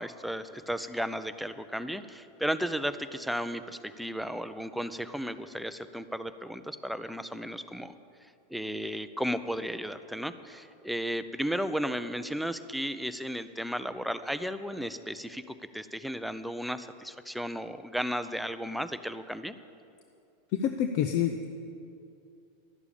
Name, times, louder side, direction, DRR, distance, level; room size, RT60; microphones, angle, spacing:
voice 1, 0.0-7.9 8.2-19.5, equal, ahead, 11 dB, 0.5 m, -34 dB
voice 2, 20.5-21.5, left 9 dB, 55° left, 7 dB, 0.6 m, -27 dB
12.0 x 6.9 x 8.5 m, 2.6 s
hypercardioid pair, 95°, 0 cm